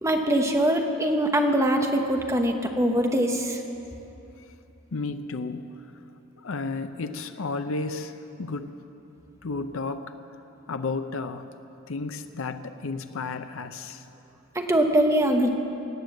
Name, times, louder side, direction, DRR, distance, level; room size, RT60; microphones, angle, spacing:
voice 1, 0.0-3.6 14.5-15.5, right 1 dB, 15° right, 3 dB, 1.0 m, -23 dB
voice 2, 4.9-5.7 6.4-8.7 9.4-10.1 10.7-11.5 11.9-14.0, left 3 dB, 65° left, 9 dB, 0.6 m, -32 dB
18.5 x 7.9 x 7.8 m, 2.9 s
head